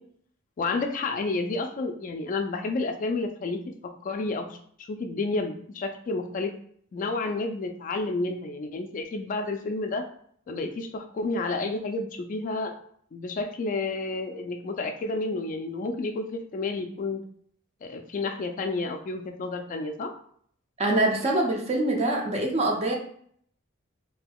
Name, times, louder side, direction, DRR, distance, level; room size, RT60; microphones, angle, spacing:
voice 1, 0.6-3.6 4.0-4.6 4.9-6.5 6.9-10.1 10.5-12.7 13.1-17.2 17.8-20.1, left 3 dB, 40° left, 6 dB, 0.3 m, -30 dB
voice 2, 20.8-22.9, right 2 dB, 30° right, 1 dB, 0.6 m, -24 dB
3.5 x 2.8 x 2.3 m, 0.62 s
head